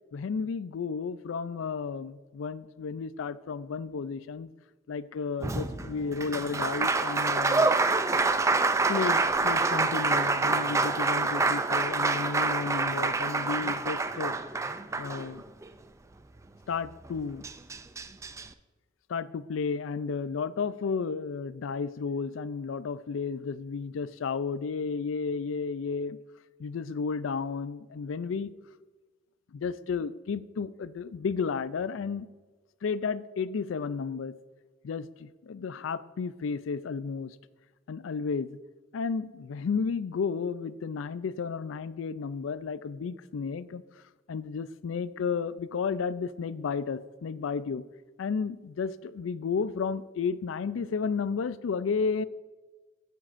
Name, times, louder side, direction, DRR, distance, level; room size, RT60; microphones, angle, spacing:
voice 1, 0.1-4.5 4.9-7.7 8.9-14.3 15.0-15.4 16.7-17.5 19.1-26.2 26.6-28.5 29.5-32.3 32.8-34.3 34.8-37.4 37.9-38.6 38.9-43.8 44.3-47.8 48.2-52.3, left 5 dB, 85° left, 16 dB, 0.4 m, -32 dB
Applause, 5.4-15.7 17.1-17.2 17.4-18.4, right 3 dB, 15° right, 0.3 m, -27 dB
13.5 x 9.1 x 2.5 m, 1.3 s
head